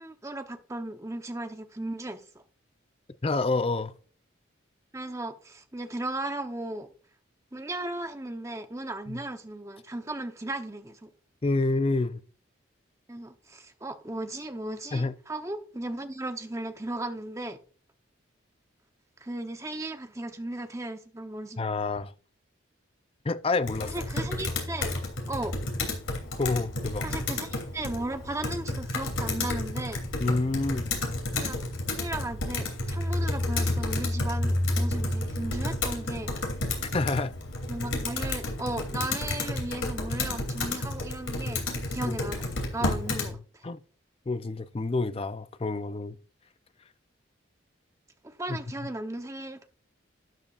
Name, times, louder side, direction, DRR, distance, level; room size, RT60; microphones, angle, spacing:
voice 1, 0.0-2.4 4.9-6.9 7.5-11.1 13.1-17.6 19.2-21.6 23.8-24.9 25.3-25.6 27.0-30.0 31.4-31.6 31.9-36.3 37.7-42.4 42.7-43.6 48.2-49.7, right 2 dB, 15° right, 0.8 m, -36 dB
voice 2, 3.2-3.9 9.1-9.2 11.4-12.2 14.9-15.2 21.6-22.1 23.2-23.9 26.4-27.1 30.2-30.9 36.8-37.3 42.0-42.2 42.8-43.8 44.3-46.2 48.5-48.9, left 3 dB, 30° left, 0.4 m, -28 dB
Computer keyboard, 23.6-43.3, left 2 dB, 80° left, 3.0 m, -31 dB
12.0 x 9.7 x 2.4 m
head